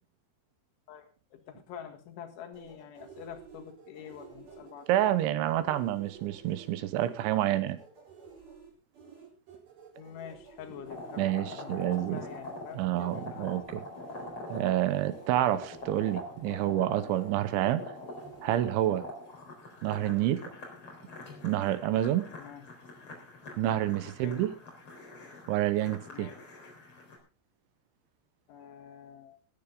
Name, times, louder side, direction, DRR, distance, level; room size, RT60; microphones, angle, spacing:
voice 1, 0.9-4.9 10.0-11.8 12.1-13.5 22.4-22.6 24.1-24.4 26.1-26.4 28.5-29.4, left 9 dB, 75° left, 5 dB, 4.1 m, -46 dB
sound 1, 2.5-18.6, right 6 dB, 50° right, 5.6 m, -53 dB
voice 2, 4.9-7.8 11.2-12.2 12.7-13.8 14.5-17.8 18.4-19.1 19.8-20.4 21.4-22.3 23.6-24.5 25.5-26.3, right 13 dB, 75° right, 13 dB, 3.2 m, -28 dB
sound 2, 10.8-27.2, left 2 dB, 30° left, 4.4 m, -45 dB
20.0 x 10.0 x 3.8 m, 0.33 s
omnidirectional pair, 5.6 m